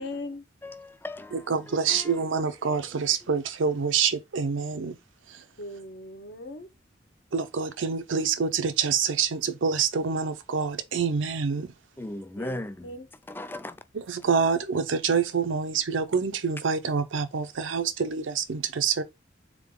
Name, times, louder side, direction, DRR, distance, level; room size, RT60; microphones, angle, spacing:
voice 1, 0.0-0.4 5.6-6.7 12.4-13.1, left 1 dB, 60° left, 0.8 m, -39 dB
voice 2, 0.6-2.3 12.0-12.9 13.3-13.8, left 1 dB, 10° left, 0.3 m, -38 dB
voice 3, 1.3-4.9 5.3-5.4 7.3-11.7 13.9-19.0, right 6 dB, 90° right, 0.6 m, -26 dB
3.8 x 3.6 x 3.6 m
head